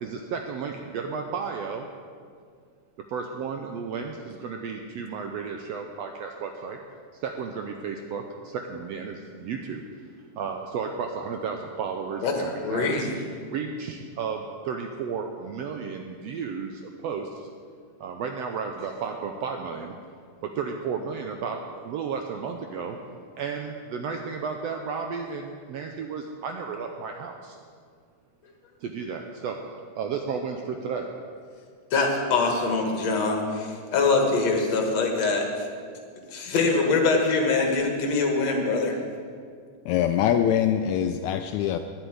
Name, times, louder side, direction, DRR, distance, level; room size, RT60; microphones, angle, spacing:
voice 1, 0.0-1.9 3.1-6.8 7.1-9.8 10.4-12.9 13.5-17.5 18.0-19.9 20.4-23.0 23.4-27.6 28.8-29.6 30.0-31.1, right 5 dB, 75° right, 4 dB, 1.5 m, -33 dB
voice 2, 12.6-13.3 31.9-35.7 36.3-39.0, left 3 dB, 60° left, 2 dB, 2.5 m, -24 dB
voice 3, 39.9-41.8, left 10 dB, 80° left, 8 dB, 1.7 m, -23 dB
10.5 x 8.1 x 9.7 m, 2.1 s
omnidirectional pair, 3.6 m